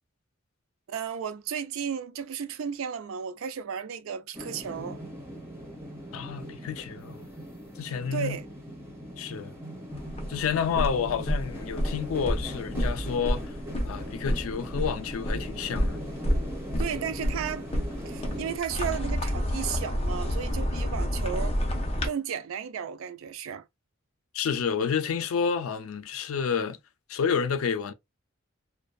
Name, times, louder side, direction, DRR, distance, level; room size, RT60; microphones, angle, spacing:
voice 1, 0.9-5.0 8.1-8.5 16.8-17.7 18.1-21.6 22.0-23.6, right 7 dB, 75° right, 0.4 m, -34 dB
sound 1, 4.3-18.6, equal, 10° right, 0.9 m, -40 dB
voice 2, 6.1-7.3 7.8-8.4 9.2-9.5 10.3-13.5 13.8-16.0 24.3-26.8 27.1-27.9, left 6 dB, 90° left, 0.4 m, -29 dB
sound 2, 9.9-22.1, equal, 30° left, 0.5 m, -30 dB
2.5 x 2.2 x 2.2 m
head